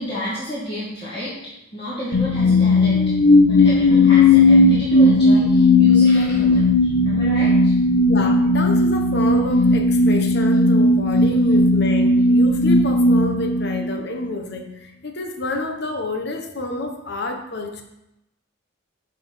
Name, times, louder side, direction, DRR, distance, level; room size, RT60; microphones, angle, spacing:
voice 1, 0.0-3.1 3.5-7.7, equal, 30° left, -10 dB, 2.4 m, -31 dB
sound 1, 2.1-14.3, left 2 dB, 75° left, 0.8 m, -16 dB
voice 2, 8.1-17.8, left 2 dB, 60° left, 4 dB, 1.2 m, -28 dB
11.5 x 4.4 x 5.7 m, 0.89 s
head